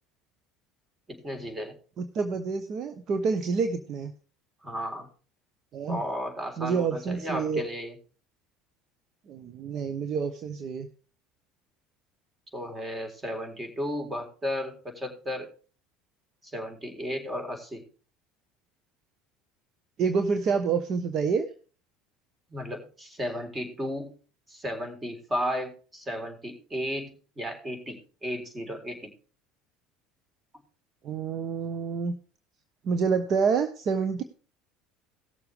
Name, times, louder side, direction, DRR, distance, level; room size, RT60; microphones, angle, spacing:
voice 1, 1.1-1.7 4.6-5.1 5.9-8.0 12.5-15.5 16.4-17.9 22.5-24.1 24.5-29.1, equal, 20° right, 4 dB, 3.8 m, -34 dB
voice 2, 2.0-4.1 5.7-6.0 6.6-7.6 9.3-10.9 20.0-21.5 31.0-32.1 32.8-34.2, right 5 dB, 50° right, 9 dB, 1.1 m, -28 dB
18.5 x 7.0 x 3.3 m, 0.37 s
hypercardioid pair, 75°, 0 cm